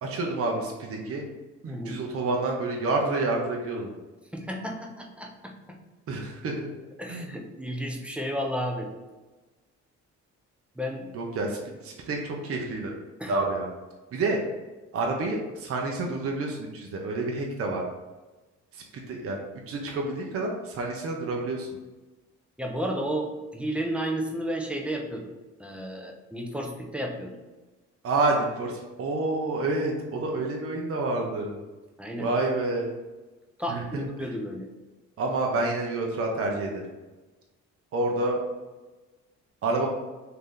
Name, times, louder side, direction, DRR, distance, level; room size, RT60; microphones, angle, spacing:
voice 1, 0.0-1.3 1.6-3.9 6.1-6.7 7.1-7.3 11.1-12.9 13.3-13.7 14.1-14.4 14.9-17.8 18.7-19.4 19.7-21.7 28.0-31.6 32.2-32.9 33.7-34.3 35.2-36.8 37.9-38.4 39.6-39.9, right 2 dB, 50° right, 1 dB, 0.7 m, -28 dB
voice 2, 1.7-2.0 4.3-5.8 7.0-8.9 10.8-11.1 13.2-13.3 22.6-25.3 25.6-27.4 32.0-32.3 33.6-34.7, equal, 5° right, 1 dB, 0.6 m, -32 dB
3.1 x 2.8 x 3.8 m, 1.2 s
cardioid pair, 90°, 30 cm